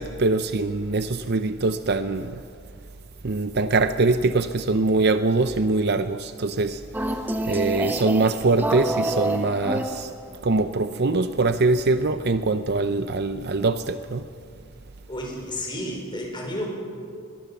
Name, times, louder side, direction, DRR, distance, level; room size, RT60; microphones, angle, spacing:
voice 1, 0.0-2.4 3.2-6.8 7.5-10.1 10.4-14.2, right 3 dB, 50° right, 10 dB, 0.7 m, -23 dB
sound 1, 6.9-10.5, right 1 dB, 10° right, 1.0 m, -28 dB
voice 2, 15.1-16.7, left 1 dB, 20° left, 0 dB, 5.2 m, -31 dB
23.0 x 22.5 x 7.1 m, 2.4 s
head